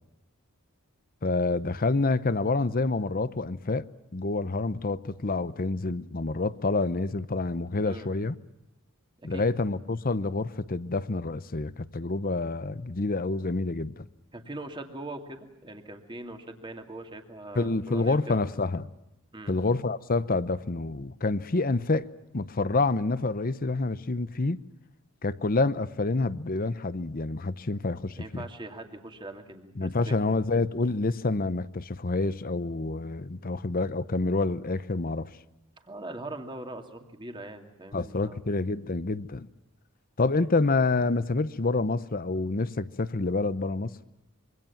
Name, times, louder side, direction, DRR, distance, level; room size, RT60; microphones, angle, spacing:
voice 1, 1.2-3.8 4.1-8.4 9.2-14.1 17.5-18.9 19.5-22.1 22.3-24.6 25.2-28.5 29.8-35.3 37.9-39.5 40.2-44.0, left 3 dB, 40° left, 0.8 m, -28 dB
voice 2, 14.3-18.4 19.3-19.5 28.1-30.1 35.8-38.4 40.4-40.5, right 2 dB, 20° right, 2.5 m, -41 dB
26.0 x 24.0 x 7.2 m
head